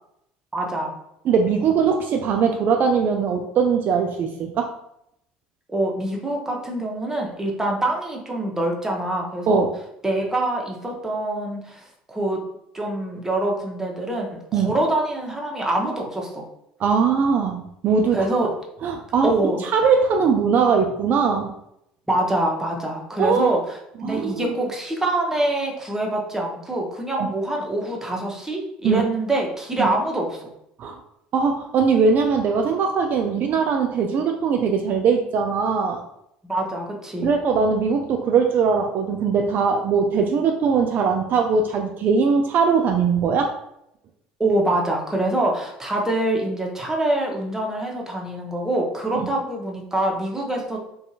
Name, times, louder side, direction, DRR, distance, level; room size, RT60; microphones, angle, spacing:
voice 1, 0.5-0.9 5.7-9.7 10.0-12.4 12.7-16.4 18.1-18.5 19.2-19.6 22.1-30.5 36.4-37.3 44.4-50.8, right 1 dB, 10° right, -1 dB, 0.8 m, -25 dB
voice 2, 1.3-4.7 9.5-9.7 14.5-14.7 16.8-18.5 18.8-19.3 19.6-21.5 23.2-23.6 24.0-24.5 27.2-27.3 28.8-29.0 29.8-29.9 30.8-31.0 31.3-36.0 37.2-43.6, right 5 dB, 50° right, 3 dB, 0.3 m, -20 dB
2.7 x 2.3 x 2.7 m, 0.77 s
hypercardioid pair, 70°, 4 cm